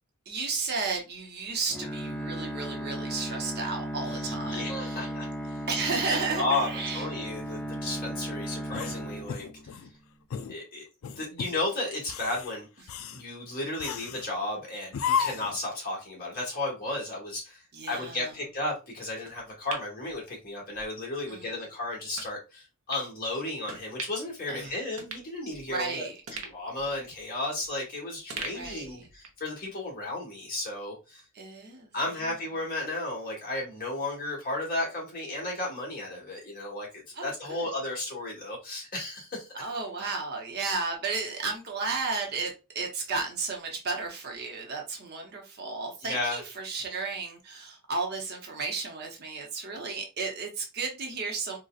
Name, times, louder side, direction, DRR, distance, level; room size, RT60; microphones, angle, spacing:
voice 1, 0.3-5.1 5.7-7.1 17.7-18.3 21.3-21.6 24.5-24.8 25.7-26.2 28.5-29.0 31.3-31.9 37.1-37.7 39.6-51.6, right 4 dB, 50° right, 0.8 m, -33 dB
Bowed string instrument, 1.7-9.9, right 1 dB, 10° left, 0.5 m, -36 dB
voice 2, 4.0-5.6 6.1-9.5 10.5-26.0 26.4-31.2 31.9-39.5 40.0-40.1 46.1-46.4, left 2 dB, 45° left, 1.5 m, -34 dB
sound 1, 8.7-9.9 10.3-10.6 11.0-11.6 12.0-12.5 12.9-13.2 13.8-14.3 14.9-15.6, left 7 dB, 70° left, 0.4 m, -32 dB
sound 2, 19.3-20.9 21.2-21.4 22.1-22.3 22.9-23.1 23.7-24.3 24.6-24.7 25.0-25.9 26.3-27.9 28.3-29.5 29.8-29.9, right 4 dB, 90° right, 0.8 m, -42 dB
3.9 x 2.2 x 2.4 m
head